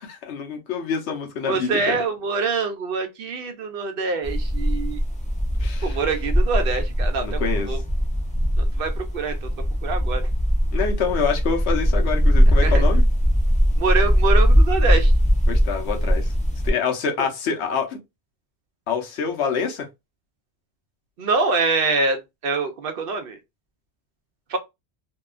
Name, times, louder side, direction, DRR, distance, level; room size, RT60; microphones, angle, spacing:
voice 1, 0.0-2.0 5.6-6.0 7.2-7.7 10.7-13.0 15.5-16.3 16.6-18.0 18.9-19.9, left 6 dB, 80° left, 1.0 m, -26 dB
voice 2, 1.5-5.0 5.8-7.8 8.6-9.5 9.8-10.3 12.6-12.8 13.8-15.1 17.2-17.3 21.2-23.4 24.5-24.6, right 4 dB, 65° right, 0.7 m, -25 dB
sound 1, 4.2-16.7, equal, 10° left, 0.4 m, -20 dB
2.7 x 2.3 x 2.3 m
omnidirectional pair, 1.1 m